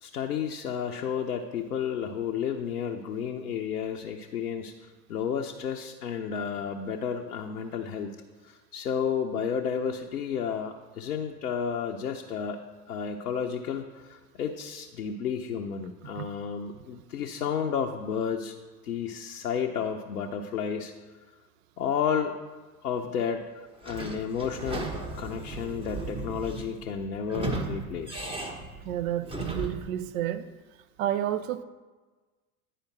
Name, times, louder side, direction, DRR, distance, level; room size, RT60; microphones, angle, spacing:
voice 1, 0.0-4.7 5.1-8.1 8.4-12.6 12.9-18.6 18.8-20.9 21.8-22.4 22.8-24.9 25.2-28.4, left 7 dB, 85° left, 1 dB, 0.7 m, -32 dB
Sliding door / Squeak, 23.8-29.9, right 2 dB, 10° right, 1.0 m, -36 dB
voice 2, 28.8-30.5 31.0-31.6, right 11 dB, 60° right, 12 dB, 0.7 m, -30 dB
10.0 x 5.0 x 4.5 m, 1.3 s
figure-of-eight pair, 80°, 45 cm